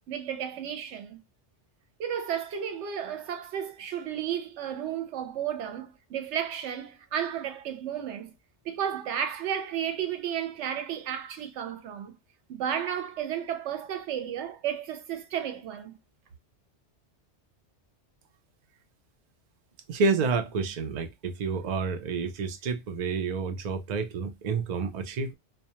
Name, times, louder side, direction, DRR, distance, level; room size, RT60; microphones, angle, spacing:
voice 1, 0.1-1.2 2.0-8.3 8.6-12.2 12.5-16.0, right 9 dB, 85° right, 0.9 m, -33 dB
voice 2, 19.9-25.3, right 4 dB, 55° right, 0.5 m, -29 dB
2.2 x 2.1 x 2.8 m
omnidirectional pair, 1.2 m